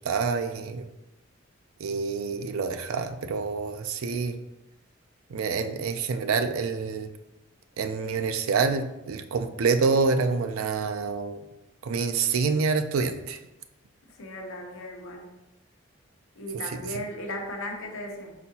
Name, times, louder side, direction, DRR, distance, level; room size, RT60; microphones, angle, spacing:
voice 1, 0.0-0.9 1.8-4.4 5.3-7.1 7.8-11.4 11.8-13.4 16.7-16.8, right 4 dB, 75° right, 9 dB, 0.4 m, -27 dB
voice 2, 14.1-15.3 16.4-18.3, left 1 dB, 70° left, 1 dB, 0.8 m, -36 dB
4.6 x 4.2 x 2.8 m, 0.95 s
head